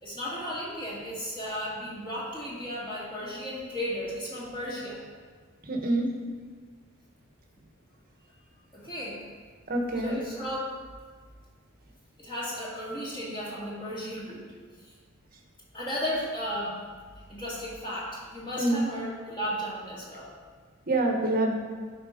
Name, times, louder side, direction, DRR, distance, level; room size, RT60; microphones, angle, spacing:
voice 1, 0.0-5.0 8.7-9.2 10.0-10.7 12.2-14.5 14.8-14.9 15.7-16.8 17.3-20.3, equal, 20° left, -7 dB, 2.1 m, -34 dB
voice 2, 5.7-6.1 9.7-10.2 18.5-18.8 20.9-21.6, right 2 dB, 40° right, 1 dB, 1.2 m, -26 dB
11.5 x 4.5 x 5.1 m, 1.5 s
head